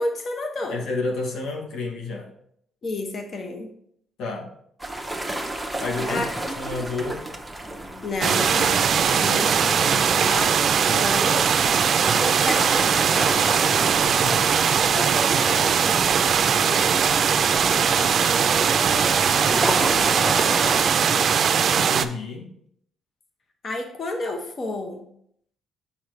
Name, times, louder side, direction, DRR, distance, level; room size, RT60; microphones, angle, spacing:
voice 1, 0.0-0.8 2.8-3.7 6.1-6.8 8.0-11.5 12.1-13.7 14.8-17.2 17.7-21.3 23.6-25.1, left 2 dB, 45° left, 4 dB, 1.1 m, -32 dB
voice 2, 0.7-2.3 4.2-4.5 5.8-6.2 6.6-7.2 14.0-14.4 21.7-22.5, left 3 dB, 80° left, 2 dB, 1.1 m, -30 dB
sound 1, 4.8-20.9, right 1 dB, 5° right, 0.8 m, -33 dB
sound 2, 8.2-22.0, right 7 dB, 55° right, 0.4 m, -20 dB
6.5 x 5.5 x 3.1 m, 0.69 s
cardioid pair, 90°, 0 cm